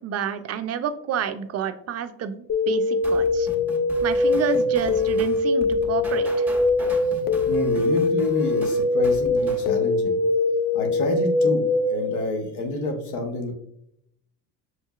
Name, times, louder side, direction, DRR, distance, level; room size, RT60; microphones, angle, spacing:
voice 1, 0.0-3.5 4.0-6.5, right 8 dB, 40° right, 10 dB, 0.4 m, -29 dB
sound 1, 2.5-12.1, left 2 dB, 25° left, 0.5 m, -22 dB
sound 2, 3.0-9.7, right 1 dB, 5° right, 1.2 m, -39 dB
voice 2, 7.5-10.1 10.7-13.5, left 2 dB, 90° left, 4 dB, 1.0 m, -28 dB
6.3 x 2.7 x 2.3 m, 0.73 s
supercardioid pair, 75°, 43 cm